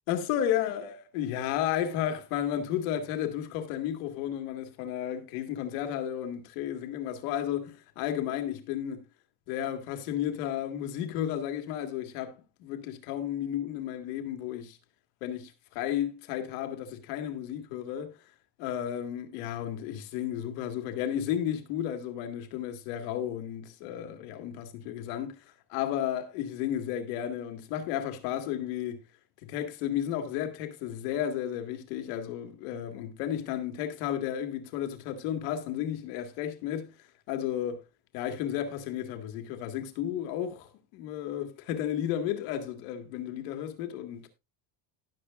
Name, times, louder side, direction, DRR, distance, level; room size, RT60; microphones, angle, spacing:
voice 1, 0.1-9.0 9.5-14.8 15.2-18.2 18.6-29.0 29.4-37.8 38.1-44.3, left 10 dB, 85° left, 2.0 m, -33 dB
18.0 x 6.7 x 2.4 m
cardioid pair, 130°, 47 cm